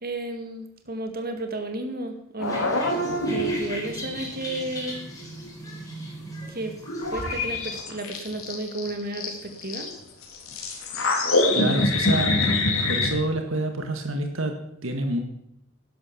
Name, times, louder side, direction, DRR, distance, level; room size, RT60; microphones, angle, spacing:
voice 1, 0.0-2.7 3.3-5.0 6.5-6.7 7.1-9.9, right 2 dB, 45° right, 6 dB, 2.2 m, -33 dB
sound 1, 2.4-4.6 4.9-5.5 6.4-6.5 6.9-9.9 10.2-13.1, left 2 dB, 85° left, 3.7 m, -25 dB
sound 2, 2.4-7.8, equal, 15° left, 4.6 m, -39 dB
voice 2, 11.5-12.4 12.9-15.2, right 1 dB, 70° right, 5 dB, 1.7 m, -27 dB
12.5 x 11.0 x 7.3 m, 0.78 s
head